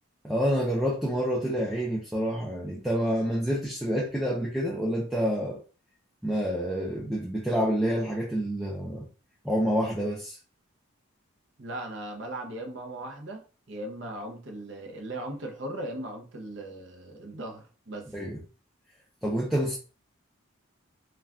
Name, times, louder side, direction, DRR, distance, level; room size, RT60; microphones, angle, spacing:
voice 1, 0.2-5.6 6.2-9.1 9.4-10.4 18.1-18.4 19.2-19.8, equal, ahead, 0.4 m, -28 dB
voice 2, 11.6-18.1, right 1 dB, 60° right, 0.6 m, -38 dB
2.3 x 2.2 x 3.5 m
head